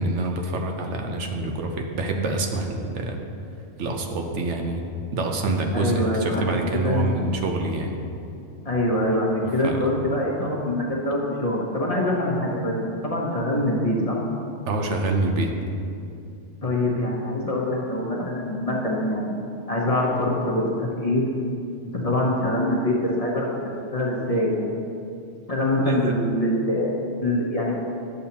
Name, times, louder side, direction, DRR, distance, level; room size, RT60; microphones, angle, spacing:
voice 1, 0.0-3.2 3.8-4.8 5.1-8.0 9.6-9.9 14.7-15.5 25.8-26.1, right 2 dB, 75° right, 3 dB, 1.0 m, -26 dB
voice 2, 5.7-7.2 8.6-14.2 16.6-19.4 19.7-21.2 21.9-23.5 23.9-24.7 25.5-27.8, left 1 dB, 35° left, -3 dB, 0.8 m, -24 dB
9.3 x 7.0 x 2.9 m, 2.6 s
omnidirectional pair, 1.2 m